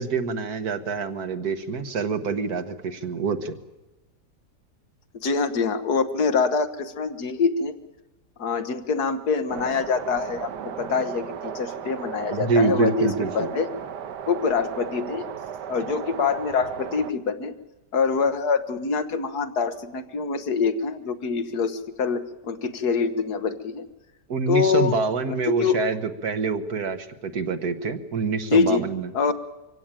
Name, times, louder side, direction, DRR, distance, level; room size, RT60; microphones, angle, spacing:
voice 1, 0.0-3.5 12.3-13.5 24.3-29.3, right 4 dB, 65° right, 9 dB, 1.8 m, -26 dB
voice 2, 5.2-7.7 8.4-13.7 14.3-15.3 15.7-17.5 17.9-23.8 24.5-24.9 25.3-25.8 28.5-28.9 29.1-29.3, left 5 dB, 70° left, 9 dB, 1.7 m, -25 dB
sound 1, 9.5-17.1, right 8 dB, 80° right, 1.6 m, -35 dB
24.5 x 16.5 x 8.9 m, 1.0 s
omnidirectional pair, 1.8 m